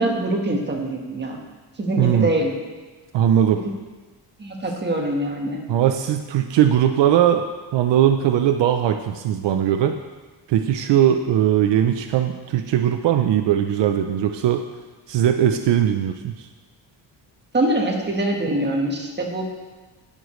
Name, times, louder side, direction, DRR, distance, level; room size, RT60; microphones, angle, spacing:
voice 1, 0.0-1.4 1.8-2.5 3.6-3.7 4.4-5.6 17.5-19.4, right 1 dB, 25° right, 0 dB, 1.4 m, -23 dB
voice 2, 2.0-2.3 3.1-3.6 5.7-10.0 10.5-14.6 15.1-16.5, right 10 dB, 75° right, 6 dB, 0.7 m, -19 dB
17.0 x 6.6 x 3.2 m, 1.3 s
cardioid pair, 140°, 43 cm